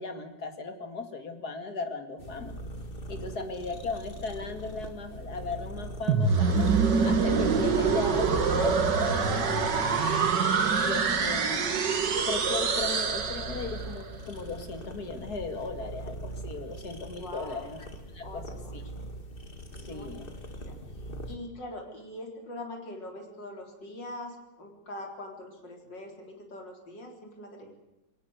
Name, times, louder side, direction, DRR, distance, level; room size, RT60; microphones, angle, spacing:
voice 1, 0.0-2.5 3.1-6.7 7.0-8.8 9.2-10.0 10.8-11.7 12.2-17.9 18.1-18.4 18.7-18.8 19.9-20.3, left 3 dB, 60° left, 8 dB, 2.8 m, -37 dB
sound 1, 2.2-21.4, equal, 30° left, 2.1 m, -42 dB
sound 2, 6.1-14.0, right 5 dB, 75° right, 2.4 m, -25 dB
voice 2, 17.2-17.7 18.2-19.1 19.7-20.1 20.7-27.7, left 1 dB, 90° left, 3 dB, 4.6 m, -43 dB
21.5 x 18.5 x 8.1 m, 0.96 s
omnidirectional pair, 1.9 m